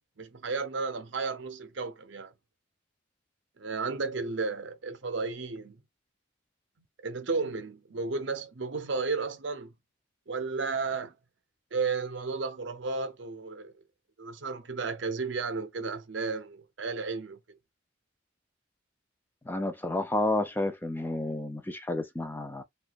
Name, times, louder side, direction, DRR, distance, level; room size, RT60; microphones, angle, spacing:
voice 1, 0.2-2.3 3.6-5.8 7.0-9.7 10.3-11.1 11.7-13.7 14.2-17.4, right 4 dB, 60° right, 0.6 m, -33 dB
voice 2, 19.5-22.6, left 2 dB, 10° left, 0.4 m, -30 dB
2.6 x 2.3 x 4.0 m
head